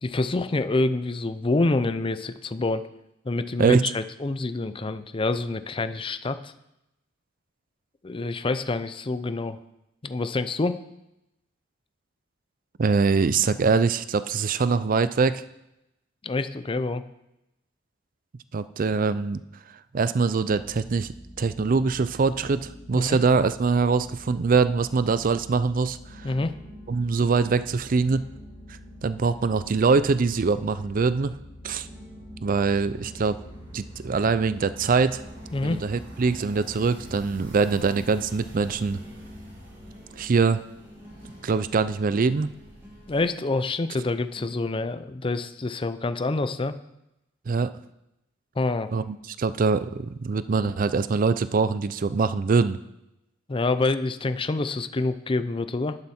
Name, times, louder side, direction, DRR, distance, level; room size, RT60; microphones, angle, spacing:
voice 1, 0.0-2.8 3.2-6.5 8.0-9.6 10.0-10.8 16.2-17.0 22.9-23.2 26.2-26.5 35.5-35.8 43.1-46.8 48.6-48.9 53.5-56.0, left 2 dB, 25° left, 11 dB, 0.5 m, -27 dB
voice 2, 12.8-15.4 18.5-19.4 19.9-26.3 26.9-28.3 29.0-31.4 31.6-31.9 32.4-33.4 33.7-35.2 35.6-39.0 40.2-40.6 41.4-42.5 47.5-47.7 48.9-52.8, right 4 dB, 45° right, 14 dB, 0.4 m, -23 dB
sound 1, 20.5-40.1, left 1 dB, 65° left, 1.6 m, -46 dB
sound 2, 26.1-44.5, equal, 10° right, 2.4 m, -48 dB
sound 3, 32.8-43.2, right 1 dB, 65° right, 4.4 m, -47 dB
11.5 x 9.7 x 4.3 m, 0.88 s
head